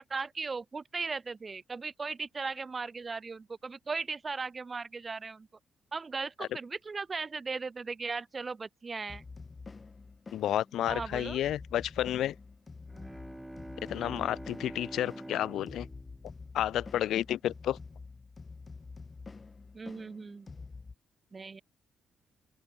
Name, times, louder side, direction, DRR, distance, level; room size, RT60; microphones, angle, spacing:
voice 1, 0.1-5.5 5.9-9.2 10.8-11.4 14.0-14.3 19.7-20.5 21.3-21.6, right 4 dB, 30° right, 0.8 m, -37 dB
sound 1, 9.1-20.9, left 4 dB, 30° left, 1.6 m, -48 dB
voice 2, 10.3-12.3 13.9-15.9 16.5-17.8, left 12 dB, 75° left, 1.2 m, -31 dB
Bowed string instrument, 12.8-17.4, right 1 dB, 5° right, 2.5 m, -46 dB
open air
cardioid pair, 90°, 0 cm